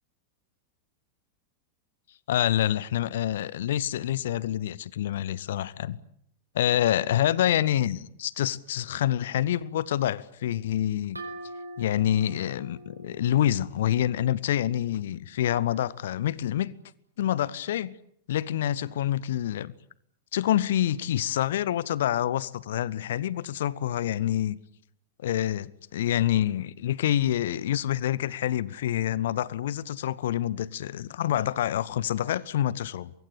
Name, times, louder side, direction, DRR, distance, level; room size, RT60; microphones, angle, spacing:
voice 1, 2.3-6.0 6.5-11.2 11.8-16.7 17.2-17.9 18.3-19.7 20.3-24.6 25.2-33.1, left 11 dB, 60° left, 0.9 m, -27 dB
sound 1, 11.1-14.7, right 1 dB, 85° right, 4.6 m, -44 dB
23.5 x 23.5 x 8.6 m
figure-of-eight pair, 90°, 0 cm